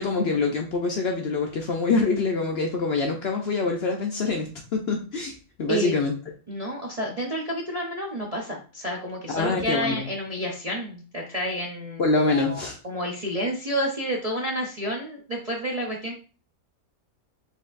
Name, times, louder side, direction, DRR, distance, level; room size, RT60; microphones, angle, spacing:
voice 1, 0.0-5.3 5.6-6.1 9.3-10.0 12.0-12.8, left 3 dB, 60° left, 2 dB, 0.7 m, -25 dB
voice 2, 6.5-12.0 12.3-16.1, equal, 40° right, -3 dB, 0.5 m, -30 dB
4.4 x 3.5 x 2.4 m, 0.36 s
omnidirectional pair, 1.5 m